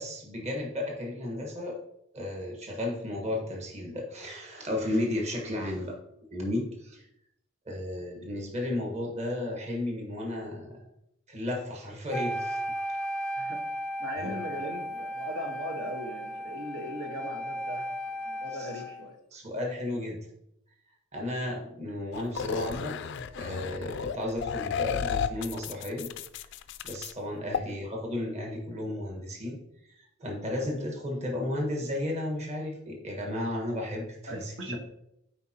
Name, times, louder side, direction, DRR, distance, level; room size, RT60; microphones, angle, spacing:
voice 1, 0.0-1.8 2.1-5.9 6.3-7.0 7.6-10.9 11.3-12.6 12.9-13.0 14.2-14.3 18.6-18.7 19.3-20.3 21.1-23.0 23.4-26.1 26.8-29.6 30.2-34.8, left 1 dB, 35° right, 0 dB, 1.4 m, -33 dB
Wind instrument woodwind instrument, 12.1-19.1, equal, 5° left, 0.4 m, -35 dB
voice 2, 14.0-19.2 27.5-27.7 34.3-34.8, right 1 dB, 70° right, 2 dB, 1.4 m, -39 dB
sound 1, 22.1-27.1 27.5-27.6, left 7 dB, 65° left, 0.4 m, -33 dB
9.3 x 4.5 x 2.9 m, 0.78 s
head